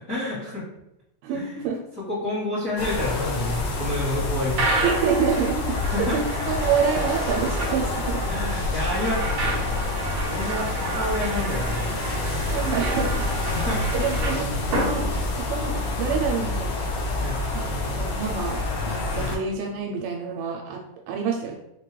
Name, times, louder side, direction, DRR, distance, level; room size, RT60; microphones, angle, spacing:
voice 1, 0.1-0.6 1.3-1.5 2.1-4.7 5.9-6.2 8.3-11.9 13.5-13.8 17.2-17.4 19.1-19.3, left 1 dB, 85° left, -10 dB, 0.7 m, -29 dB
voice 2, 1.2-1.8 4.8-8.2 12.5-13.3 13.9-15.1 15.4-16.8 17.5-21.6, right 6 dB, 85° right, 1 dB, 2.2 m, -27 dB
sound 1, 2.8-19.4, left 2 dB, 70° left, 1.9 m, -27 dB
sound 2, 4.5-15.8, right 2 dB, 60° right, 1.4 m, -31 dB
sound 3, 6.4-15.3, left 1 dB, 45° left, 1.1 m, -45 dB
5.5 x 2.2 x 3.1 m, 0.85 s
omnidirectional pair, 3.9 m